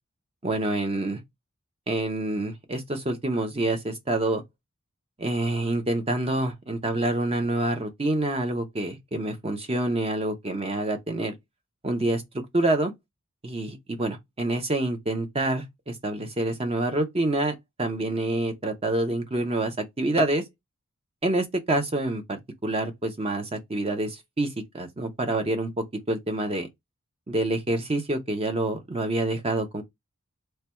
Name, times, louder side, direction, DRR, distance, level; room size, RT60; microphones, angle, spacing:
voice 1, 0.4-1.2 1.9-4.4 5.2-11.3 11.8-12.9 13.4-20.4 21.2-24.5 24.7-26.7 27.3-29.8, right 2 dB, 25° right, 0.7 m, -27 dB
3.1 x 2.3 x 4.3 m
head